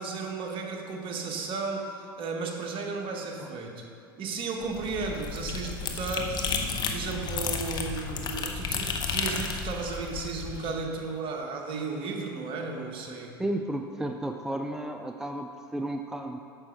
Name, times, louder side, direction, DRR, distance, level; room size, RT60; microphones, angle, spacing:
voice 1, 0.0-3.8 4.2-13.3, right 4 dB, 45° right, 2 dB, 1.3 m, -34 dB
sound 1, 4.6-10.7, left 5 dB, 35° left, 0.9 m, -32 dB
voice 2, 13.4-16.4, right 1 dB, 5° right, 5 dB, 0.4 m, -33 dB
8.7 x 6.2 x 4.5 m, 2.4 s
hypercardioid pair, 80°, 12 cm